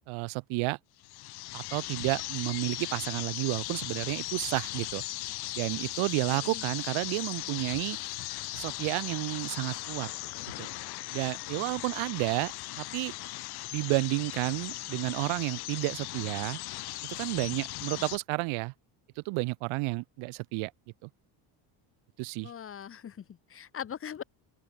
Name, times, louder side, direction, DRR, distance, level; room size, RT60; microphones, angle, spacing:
voice 1, 0.1-0.8 1.5-5.0 5.5-8.0 8.5-10.1 10.6-10.7 11.1-13.1 13.7-16.6 17.2-18.7 19.2-20.7 21.0-21.1 22.2-22.5, right 26 dB, 90° right, 1.7 m, -31 dB
sound 1, 1.0-18.2, left 19 dB, 50° left, 1.4 m, -38 dB
voice 2, 6.3-6.6 22.4-24.2, left 8 dB, 25° left, 3.6 m, -41 dB
open air
cardioid pair, 180°, 48 cm